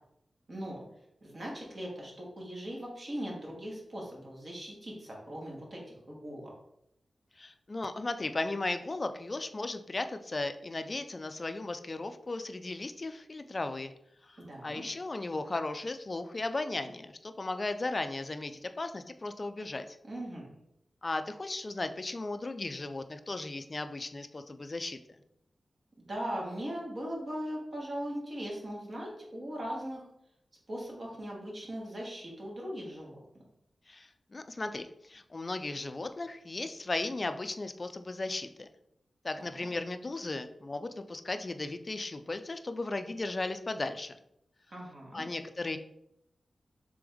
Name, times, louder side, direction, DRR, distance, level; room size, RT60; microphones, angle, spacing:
voice 1, 0.5-0.8 1.2-6.5 14.4-14.8 20.0-20.5 26.0-30.0 30.7-33.2 39.4-39.7 44.7-45.2, equal, 50° right, -3 dB, 1.4 m, -39 dB
voice 2, 7.4-13.9 14.3-20.0 21.0-25.0 33.9-38.7 39.2-44.2 45.1-45.8, left 2 dB, 40° left, 9 dB, 0.3 m, -36 dB
3.5 x 3.3 x 3.5 m, 0.78 s
cardioid pair, 65°, 0 cm